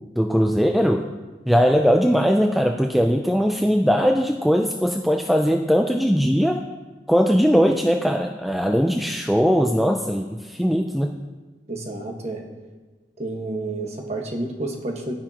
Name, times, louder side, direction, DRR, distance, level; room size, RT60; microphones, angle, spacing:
voice 1, 0.2-1.1 1.5-6.6 7.1-11.1, equal, ahead, 3 dB, 0.4 m, -20 dB
voice 2, 11.7-12.4 13.2-15.1, right 2 dB, 35° right, 1 dB, 1.4 m, -30 dB
13.5 x 10.5 x 2.9 m, 1.3 s
head